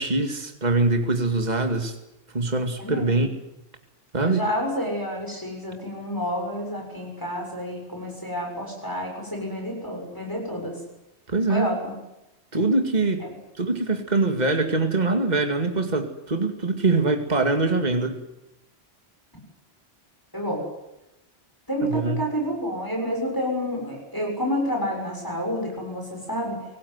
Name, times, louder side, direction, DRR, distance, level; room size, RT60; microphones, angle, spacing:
voice 1, 0.0-2.0 2.3-3.3 4.1-4.5 11.3-11.7 12.5-13.3 13.6-18.2 21.8-22.2, right 3 dB, 40° right, 5 dB, 2.4 m, -23 dB
voice 2, 2.8-3.3 4.2-10.8 11.5-11.9 20.3-20.6 21.7-26.6, equal, 20° left, 0 dB, 6.9 m, -29 dB
25.0 x 19.0 x 9.6 m, 0.92 s
omnidirectional pair, 1.1 m